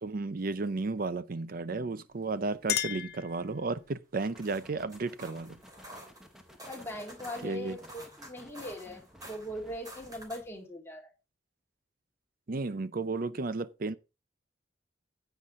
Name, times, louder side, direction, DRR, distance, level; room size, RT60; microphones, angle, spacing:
voice 1, 0.0-5.6 7.4-7.8 12.5-14.0, right 3 dB, 50° right, 0.6 m, -33 dB
Chink clink, 2.1-4.0, left 12 dB, 55° left, 0.7 m, -36 dB
sound 1, 4.2-10.5, equal, 5° right, 1.1 m, -56 dB
sound 2, 4.2-10.6, right 1 dB, 20° right, 3.0 m, -50 dB
voice 2, 6.7-11.1, equal, 15° left, 2.2 m, -41 dB
9.8 x 8.0 x 3.7 m
head